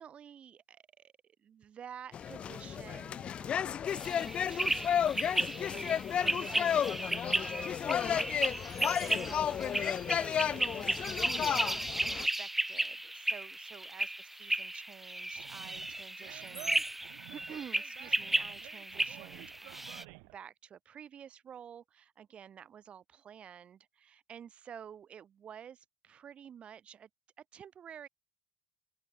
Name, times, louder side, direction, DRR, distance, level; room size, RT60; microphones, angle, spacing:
voice 1, 0.0-27.1 27.4-28.1, right 8 dB, 45° right, 4.7 m, -51 dB
sound 1, 2.1-12.3, left 8 dB, 40° left, 0.3 m, -33 dB
sound 2, 3.9-20.0, right 1 dB, 10° right, 3.1 m, -35 dB
Animal, 15.3-20.4, right 40 dB or more, 80° right, 5.2 m, -51 dB
open air
hypercardioid pair, 75°, 3 cm